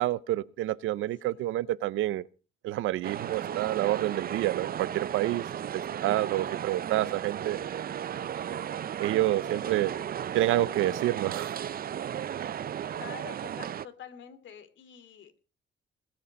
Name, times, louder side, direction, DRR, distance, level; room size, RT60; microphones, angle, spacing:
voice 1, 0.0-2.3 2.6-5.4 6.0-7.6 9.0-9.9 10.3-11.6, right 15 dB, 85° right, 0.7 m, -28 dB
sound 1, 3.0-13.9, right 9 dB, 50° right, 0.6 m, -35 dB
voice 2, 12.9-15.4, left 8 dB, 70° left, 2.6 m, -47 dB
20.5 x 8.5 x 5.3 m
cardioid pair, 90°, 20 cm